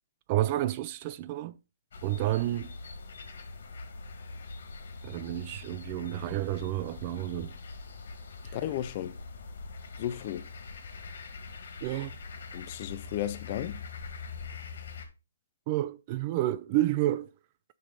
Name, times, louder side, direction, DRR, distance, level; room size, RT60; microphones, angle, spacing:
voice 1, 0.3-1.6 2.0-2.7 5.0-7.5 8.4-8.6 11.8-12.2 15.7-17.3, right 14 dB, 30° right, 0.4 m, -30 dB
sound 1, 1.9-15.1, left 4 dB, 60° left, 2.2 m, -43 dB
voice 2, 8.5-9.2 10.0-10.5 12.5-13.9, left 12 dB, 35° left, 0.5 m, -34 dB
8.7 x 5.4 x 4.0 m
hypercardioid pair, 155°, 0 cm